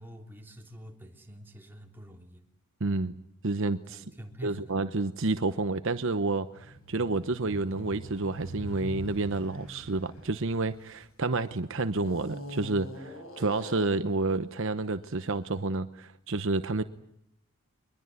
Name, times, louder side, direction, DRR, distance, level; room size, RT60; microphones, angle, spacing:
voice 1, 0.0-2.4 3.9-4.7, right 1 dB, 10° right, 1 dB, 3.5 m, -47 dB
voice 2, 2.8-3.1 3.4-4.0 4.4-16.8, right 3 dB, 60° right, 10 dB, 0.9 m, -30 dB
sound 1, 6.5-11.3 11.9-14.1, equal, 65° left, 7.7 m, -43 dB
23.5 x 22.0 x 9.5 m, 0.77 s
head